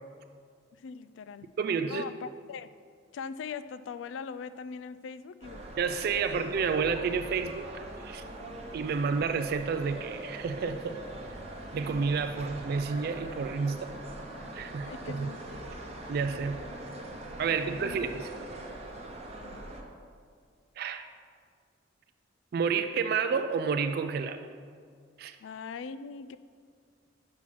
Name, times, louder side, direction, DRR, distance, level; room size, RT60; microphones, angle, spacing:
voice 1, 0.7-1.5 1.8-2.7 3.1-5.7 14.8-15.6 17.8-18.0 19.4-19.6 25.4-26.4, left 6 dB, 75° left, 15 dB, 0.3 m, -41 dB
voice 2, 1.6-2.1 5.8-8.2 8.7-11.0 11.7-13.9 14.5-15.3 16.1-16.6 17.4-18.3 20.8-21.1 22.5-24.4 25.2-25.4, right 5 dB, 55° right, 8 dB, 0.3 m, -30 dB
sound 1, 5.4-19.8, right 1 dB, 35° right, 0.9 m, -42 dB
5.7 x 5.6 x 6.2 m, 2.1 s
head